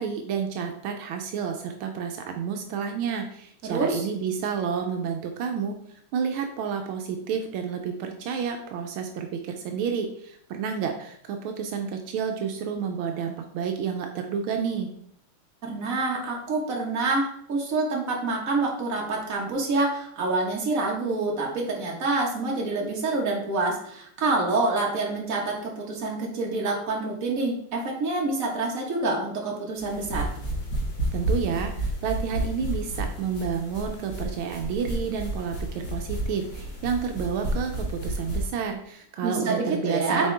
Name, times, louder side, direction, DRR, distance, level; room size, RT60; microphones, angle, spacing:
voice 1, 0.0-5.8 6.1-14.9 31.1-40.3, right 6 dB, 80° right, 4 dB, 1.5 m, -30 dB
voice 2, 3.6-4.1 15.6-30.3 39.2-40.3, right 3 dB, 45° right, -1 dB, 1.7 m, -27 dB
sound 1, 29.8-38.5, right 1 dB, 50° left, 2.1 m, -31 dB
7.4 x 4.4 x 3.4 m, 0.69 s
omnidirectional pair, 2.3 m